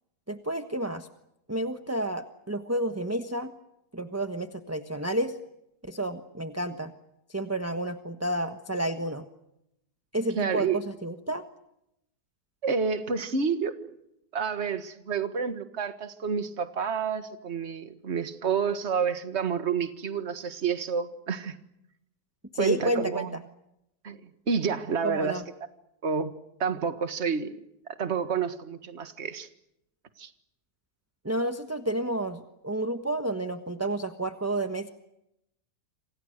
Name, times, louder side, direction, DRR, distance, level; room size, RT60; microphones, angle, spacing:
voice 1, 0.3-1.1 1.5-3.5 3.9-5.4 5.8-6.9 7.3-9.3 10.1-11.4 22.5-23.3 25.0-25.4 31.2-34.9, right 1 dB, 10° right, 8 dB, 1.2 m, -30 dB
voice 2, 10.4-10.8 12.6-13.8 14.3-21.6 22.6-23.3 24.0-24.2 24.5-25.4 26.0-27.6 28.0-29.5 30.2-30.3, right 6 dB, 40° right, 10 dB, 1.9 m, -29 dB
28.5 x 27.0 x 6.6 m, 0.83 s
omnidirectional pair, 1.7 m